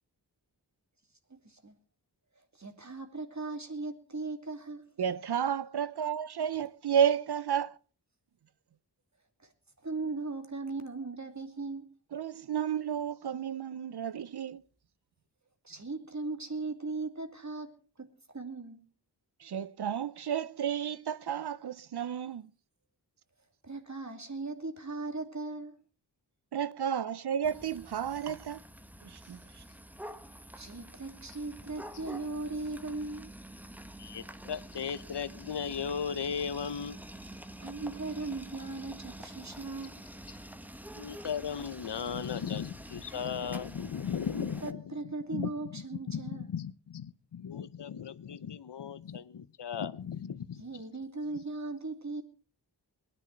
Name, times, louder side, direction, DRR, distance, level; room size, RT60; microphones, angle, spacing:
voice 1, 1.3-1.7 2.6-4.9 9.8-11.9 15.6-18.1 18.3-18.9 23.6-25.7 30.6-33.3 37.6-40.0 44.3-46.5 50.6-52.2, right 3 dB, 40° right, 2.6 m, -38 dB
voice 2, 5.0-7.8 12.1-14.6 19.4-22.5 26.5-28.6 29.0-29.6, right 8 dB, 65° right, 0.6 m, -32 dB
sound 1, 27.4-44.7, right 1 dB, 5° right, 1.0 m, -47 dB
voice 3, 34.0-37.0 41.0-50.8, left 7 dB, 75° left, 0.9 m, -37 dB
21.5 x 10.0 x 4.5 m
wide cardioid pair, 50°, 41 cm